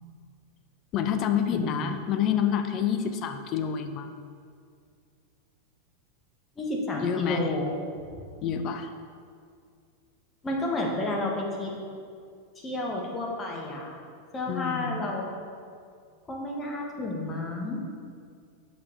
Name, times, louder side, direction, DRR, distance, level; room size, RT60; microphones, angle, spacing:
voice 1, 0.9-4.1 7.0-7.5 8.4-8.9 14.5-15.0, left 8 dB, 35° left, 7 dB, 0.6 m, -28 dB
voice 2, 1.5-2.0 6.6-7.8 10.4-11.7 12.6-13.9 14.3-15.3 16.3-17.8, left 2 dB, 20° left, -1 dB, 1.3 m, -31 dB
6.8 x 5.6 x 4.0 m, 2.2 s
figure-of-eight pair, 90°, 0 cm